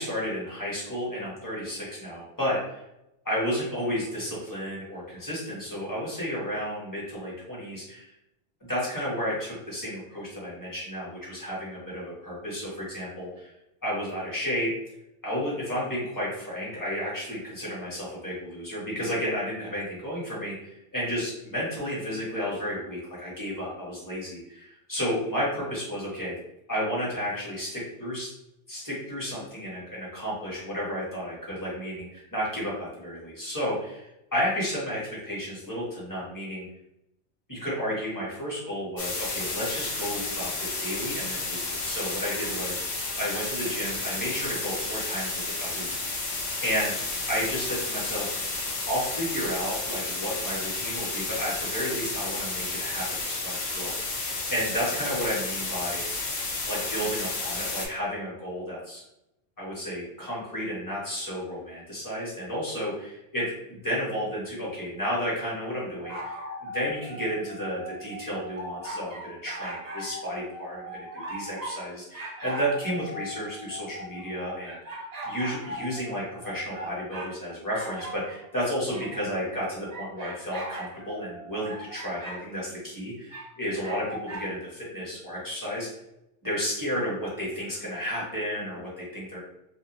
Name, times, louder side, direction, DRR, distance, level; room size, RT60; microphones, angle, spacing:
voice 1, 0.0-2.8 3.2-8.1 8.6-13.5 13.8-14.7 15.2-26.3 26.7-28.3 28.7-36.7 37.5-42.8 43.1-46.3 46.6-47.0 47.3-48.3 48.9-56.0 56.6-59.0 59.6-66.3 66.6-85.9 86.4-89.4, equal, 20° left, -6 dB, 1.0 m, -32 dB
sound 1, 39.0-57.9, left 3 dB, 50° left, 0.6 m, -32 dB
sound 2, 66.0-71.8 72.1-77.3 77.7-82.4 83.3-84.5, right 1 dB, 40° right, 0.7 m, -39 dB
2.5 x 2.1 x 2.9 m, 0.86 s
omnidirectional pair, 1.2 m